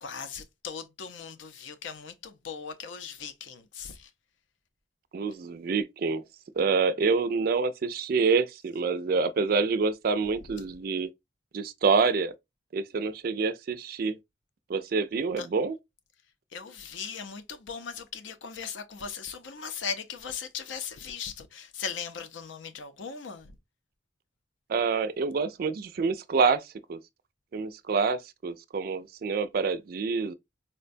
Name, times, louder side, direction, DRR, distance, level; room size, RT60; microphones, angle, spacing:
voice 1, 0.0-4.1 15.4-15.5 16.5-23.6, left 6 dB, 75° left, 0.6 m, -38 dB
voice 2, 5.1-6.2 6.6-11.1 11.5-12.3 12.7-14.2 14.7-15.8 24.7-26.6 26.9-27.0 27.5-30.3, right 4 dB, 50° right, 0.3 m, -27 dB
4.4 x 2.2 x 2.5 m
head